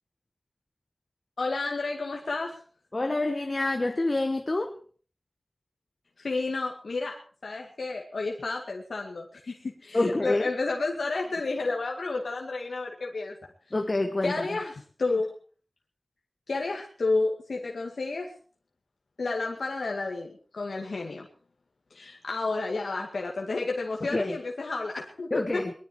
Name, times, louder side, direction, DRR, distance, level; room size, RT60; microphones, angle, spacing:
voice 1, 1.4-2.6 6.2-7.2 7.4-13.4 14.2-14.7 15.0-15.3 16.5-18.3 19.2-21.3 21.9-25.6, left 3 dB, 90° left, 2.1 m, -31 dB
voice 2, 2.9-4.8 9.9-10.5 13.7-14.5 24.0-24.4 25.3-25.7, left 2 dB, 45° left, 1.5 m, -27 dB
20.5 x 13.0 x 4.8 m
wide cardioid pair, 45°, 0 cm